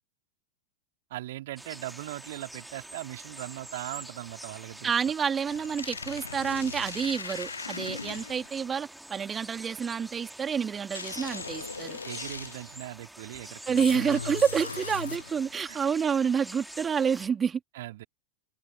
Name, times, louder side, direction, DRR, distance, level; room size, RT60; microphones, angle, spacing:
voice 1, 1.1-5.0 12.0-14.0 15.7-15.8 17.7-18.0, right 16 dB, 55° right, 3.5 m, -39 dB
sound 1, 1.6-17.3, right 1 dB, 5° right, 3.1 m, -46 dB
voice 2, 4.8-12.0 13.7-17.6, right 7 dB, 20° right, 2.9 m, -28 dB
sound 2, 5.4-8.5 10.9-12.8 13.8-15.5, left 5 dB, 75° left, 0.9 m, -39 dB
figure-of-eight pair, 90°, 0 cm